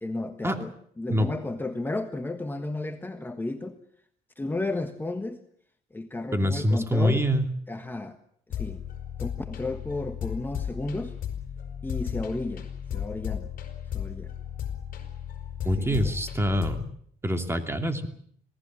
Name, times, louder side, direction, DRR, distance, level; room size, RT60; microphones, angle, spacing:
voice 1, 0.0-3.8 4.4-5.4 5.9-7.3 7.7-8.2 8.5-8.8 9.2-11.2 11.8-13.5 13.9-14.3 15.8-16.1, left 2 dB, 10° left, 6 dB, 1.4 m, -33 dB
voice 2, 6.3-7.5 15.6-16.8 17.2-18.1, equal, 15° right, 6 dB, 2.8 m, -25 dB
sound 1, 8.5-16.9, left 9 dB, 55° left, 5.3 m, -35 dB
27.0 x 18.5 x 7.5 m, 0.64 s
cardioid pair, 110°, 17 cm